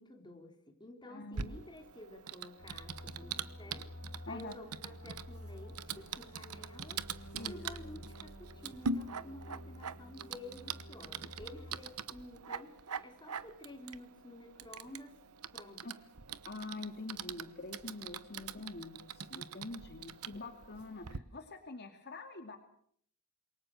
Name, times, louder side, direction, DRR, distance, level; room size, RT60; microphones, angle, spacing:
voice 1, 0.0-3.9 4.3-7.0 7.5-12.7 13.0-15.2 15.5-15.8, left 1 dB, 20° left, 3 dB, 3.8 m, -51 dB
voice 2, 1.0-1.6 4.3-4.5 7.3-7.7 15.8-15.9 16.5-22.6, left 2 dB, 50° left, 5 dB, 2.5 m, -45 dB
Typing, 1.3-21.2, right 5 dB, 80° right, 1.1 m, -44 dB
sound 1, 2.6-11.8, left 1 dB, 85° left, 3.8 m, -51 dB
27.5 x 23.0 x 6.5 m, 0.65 s
head